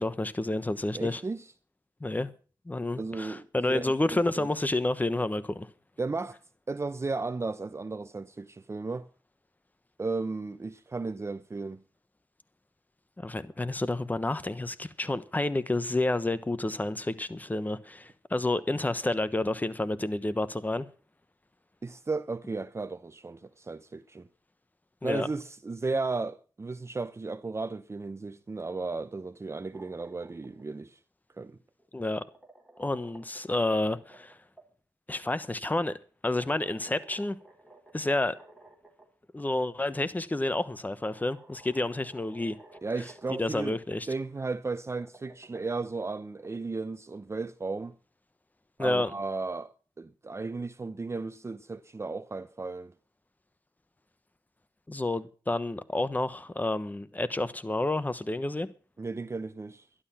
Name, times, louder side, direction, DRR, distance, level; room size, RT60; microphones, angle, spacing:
voice 1, 0.0-1.2 2.0-2.3 2.7-5.7 13.2-20.9 25.0-25.3 31.9-32.2 32.8-34.4 35.1-36.0 36.2-37.4 37.9-38.4 39.3-42.6 43.4-44.1 48.8-49.1 54.9-58.7, left 2 dB, 20° left, 1.2 m, -29 dB
voice 2, 0.9-1.5 2.9-4.5 6.0-6.4 6.7-9.1 10.0-11.8 21.8-24.3 25.0-31.0 31.4-31.6 42.8-43.8 44.1-47.9 48.8-52.9 59.0-59.9, right 3 dB, 35° right, 0.8 m, -35 dB
sound 1, 29.7-30.6 31.8-34.7 36.2-39.1 39.4-39.5 40.5-40.6 41.0-44.0 44.8-46.5, right 2 dB, 5° right, 4.3 m, -54 dB
12.0 x 11.5 x 5.8 m
cardioid pair, 60°, 8 cm